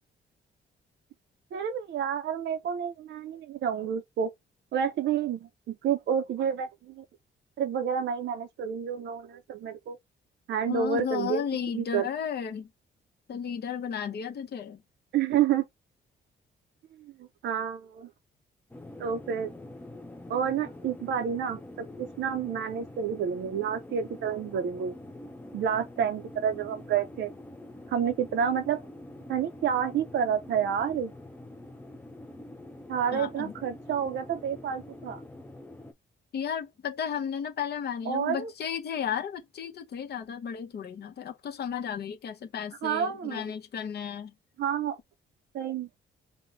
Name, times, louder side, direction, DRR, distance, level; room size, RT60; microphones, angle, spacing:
voice 1, 1.5-4.3 4.7-7.0 7.6-10.0 10.5-11.4 11.7-12.1 15.1-15.6 17.0-18.1 19.0-19.5 20.3-24.9 25.5-27.3 27.9-28.8 29.3-31.1 32.9-35.2 38.1-38.5 42.8-43.4 44.6-45.0 45.5-45.9, right 8 dB, 70° right, 0.5 m, -29 dB
voice 2, 10.7-12.7 13.3-14.8 33.1-33.5 36.3-44.3, left 8 dB, 55° left, 0.8 m, -34 dB
sound 1, 18.7-35.9, left 1 dB, 10° left, 0.5 m, -45 dB
5.2 x 2.2 x 2.7 m
cardioid pair, 110°, 20 cm